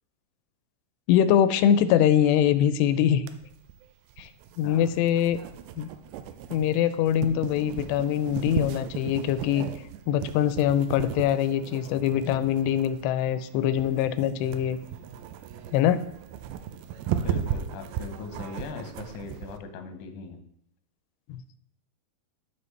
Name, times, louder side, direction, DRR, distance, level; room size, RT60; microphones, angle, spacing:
voice 1, 1.1-3.2 4.2-4.3 4.6-5.4 5.8-5.9 6.5-9.7 10.1-14.8 15.7-16.0 21.3-21.4, left 10 dB, 90° left, 13 dB, 2.7 m, -23 dB
sound 1, 3.3-19.6, right 9 dB, 85° right, 2.1 m, -36 dB
voice 2, 17.2-20.4, left 4 dB, 70° left, 5 dB, 1.9 m, -39 dB
14.0 x 4.9 x 3.2 m, 0.72 s
omnidirectional pair, 4.8 m